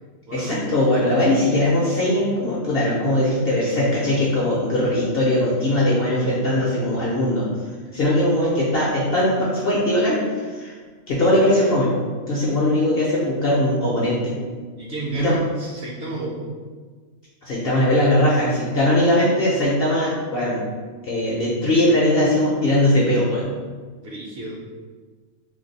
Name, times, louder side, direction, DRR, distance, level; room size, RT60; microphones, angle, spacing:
voice 1, 0.3-7.5 7.9-10.7 11.1-11.9 12.3-14.3 15.1-15.4 17.4-20.6 21.0-23.5, left 1 dB, 60° left, -6 dB, 0.6 m, -20 dB
voice 2, 14.7-16.5 24.0-24.6, right 2 dB, 60° right, -5 dB, 0.8 m, -31 dB
2.5 x 2.3 x 3.9 m, 1.5 s
omnidirectional pair, 1.4 m